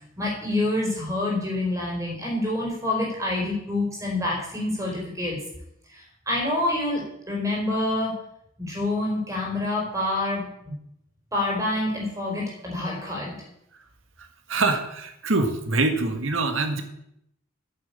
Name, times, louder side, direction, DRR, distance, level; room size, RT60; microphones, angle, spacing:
voice 1, 0.2-5.4 5.9-8.2 8.7-10.7 11.3-13.4, left 2 dB, 15° right, -3 dB, 4.4 m, -27 dB
voice 2, 14.2-16.8, right 3 dB, 75° right, 7 dB, 1.7 m, -25 dB
8.9 x 8.0 x 8.5 m, 0.77 s
head